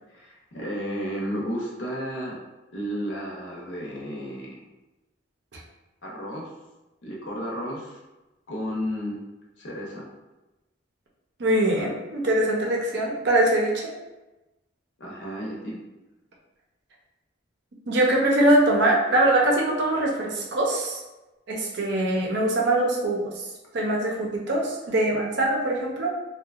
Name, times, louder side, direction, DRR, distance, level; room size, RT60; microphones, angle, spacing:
voice 1, 0.1-2.4 2.7-4.7 6.0-6.5 7.0-8.0 8.5-9.2 9.6-10.1 15.0-15.8, equal, 75° left, -3 dB, 0.7 m, -32 dB
voice 2, 11.4-13.9 17.9-21.0 21.5-23.4 23.7-26.1, right 1 dB, 60° right, -1 dB, 0.5 m, -23 dB
2.7 x 2.2 x 2.4 m, 1.0 s
head